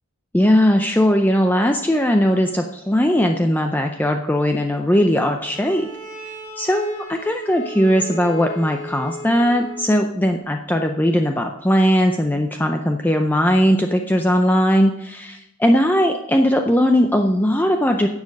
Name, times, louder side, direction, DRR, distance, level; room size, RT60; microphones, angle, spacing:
voice 1, 0.3-5.9 6.6-18.1, equal, 10° left, 4 dB, 0.4 m, -18 dB
Bowed string instrument, 5.4-10.0, left 1 dB, 35° left, 4.2 m, -36 dB
10.5 x 7.2 x 6.4 m, 0.88 s
head